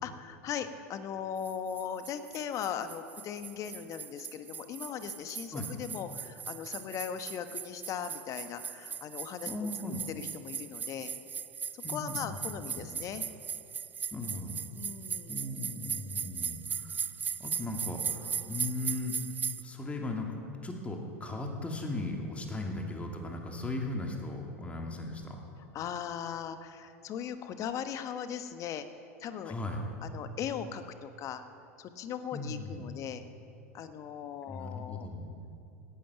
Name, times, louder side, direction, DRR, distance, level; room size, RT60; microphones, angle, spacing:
voice 1, 0.0-9.5 10.1-11.1 11.7-13.2 14.7-15.4 25.7-28.9 29.2-29.5 30.0-31.4 31.8-33.2 33.7-35.1, left 8 dB, 40° left, 10 dB, 1.1 m, -39 dB
sound 1, 1.4-19.6, right 7 dB, 25° right, 0.4 m, -38 dB
voice 2, 9.5-10.0 11.8-12.4 12.7-12.9 14.1-14.5 15.3-17.0 17.4-19.1 19.6-20.3 20.6-25.4 29.4-29.8 32.3-32.9 34.5-35.3, left 2 dB, 15° left, 1 dB, 2.6 m, -37 dB
17.5 x 12.0 x 5.9 m, 2.8 s
hypercardioid pair, 90°, 8 cm